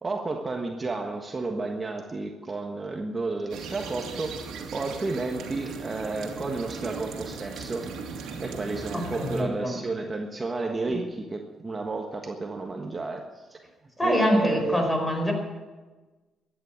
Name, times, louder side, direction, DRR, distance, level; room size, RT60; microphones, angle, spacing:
voice 1, 0.0-7.9 8.4-13.6 14.0-14.8, right 3 dB, 30° right, 2 dB, 1.4 m, -31 dB
sound 1, 3.5-9.4, right 5 dB, 85° right, 2.4 m, -38 dB
voice 2, 8.9-9.7 10.9-11.0 14.0-15.3, equal, 10° left, 2 dB, 4.9 m, -25 dB
13.5 x 9.9 x 9.4 m, 1.3 s
cardioid pair, 90°, 0 cm